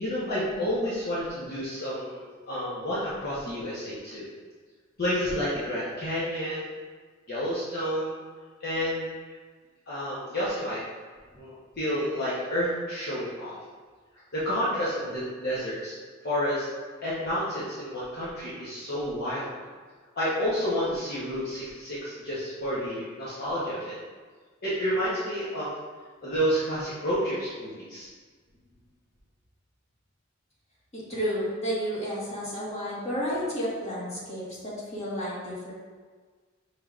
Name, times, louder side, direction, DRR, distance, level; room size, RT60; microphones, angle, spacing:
voice 1, 0.0-4.3 5.0-6.7 7.3-8.1 8.6-9.3 9.9-10.8 11.3-13.6 14.3-16.0 16.2-16.6 17.0-19.5 20.2-24.0 24.6-25.7 26.2-28.1, equal, 55° left, -10 dB, 0.9 m, -30 dB
voice 2, 30.9-35.7, equal, 35° left, -8 dB, 1.5 m, -31 dB
5.6 x 3.4 x 2.4 m, 1.5 s
head